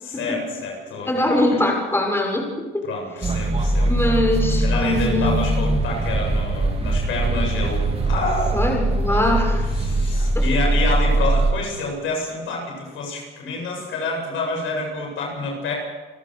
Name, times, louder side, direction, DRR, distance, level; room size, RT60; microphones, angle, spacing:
voice 1, 0.0-1.4 2.8-3.9 4.6-8.6 9.8-15.7, left 3 dB, 85° left, 1 dB, 8.0 m, -28 dB
voice 2, 1.0-2.9 3.9-5.5 8.5-9.6 10.3-10.4, left 1 dB, 10° left, 0 dB, 6.6 m, -22 dB
sound 1, 3.2-11.5, right 2 dB, 30° right, 3.5 m, -21 dB
29.0 x 14.0 x 6.7 m, 1.2 s
cardioid pair, 90°, 20 cm